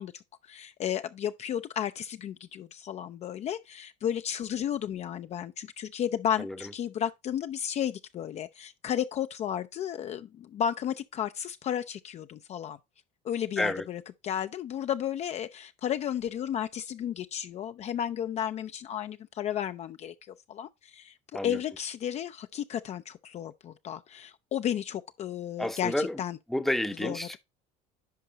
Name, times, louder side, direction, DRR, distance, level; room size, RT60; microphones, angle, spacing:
voice 1, 0.0-12.8 13.2-26.4 26.9-27.4, left 9 dB, 40° left, 0.4 m, -33 dB
voice 2, 25.6-26.2 26.5-27.4, left 1 dB, ahead, 0.7 m, -30 dB
10.5 x 4.9 x 2.8 m
cardioid pair, 125°, 17 cm